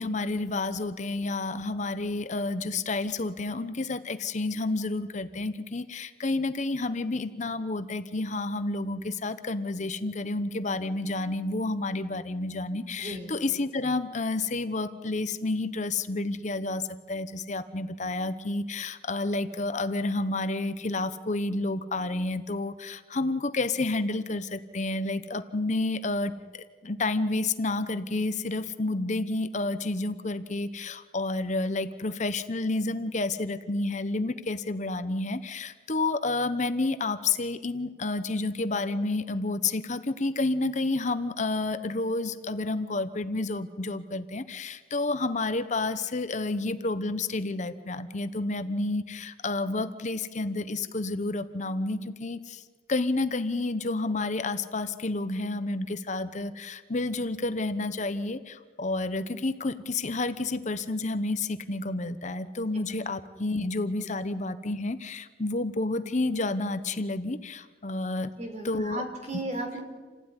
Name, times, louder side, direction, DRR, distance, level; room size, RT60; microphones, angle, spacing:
voice 1, 0.0-52.6 52.9-68.3 68.6-69.0, left 2 dB, 45° left, 11 dB, 1.0 m, -30 dB
voice 2, 13.0-13.3 68.4-69.8, right 1 dB, 40° right, 4 dB, 4.4 m, -35 dB
28.5 x 16.0 x 9.8 m, 1.4 s
head